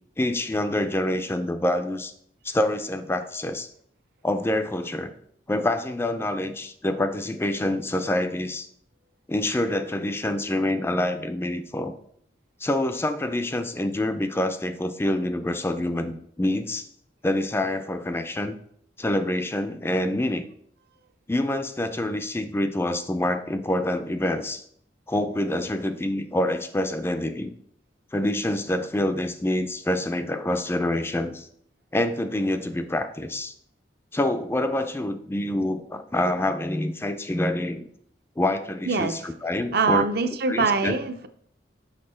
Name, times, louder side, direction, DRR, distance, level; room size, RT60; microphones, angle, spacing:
voice 1, 0.2-2.1 2.4-3.7 4.2-5.1 5.5-8.7 9.3-11.9 12.6-16.9 17.2-18.6 19.0-20.5 21.3-24.6 25.1-27.5 28.1-31.5 31.9-33.5 34.1-37.9 38.4-40.1 40.5-41.0, left 1 dB, 15° left, 9 dB, 0.4 m, -26 dB
voice 2, 38.9-39.2 39.7-41.3, right 4 dB, 60° right, 9 dB, 0.6 m, -23 dB
6.6 x 6.1 x 4.3 m, 0.67 s
head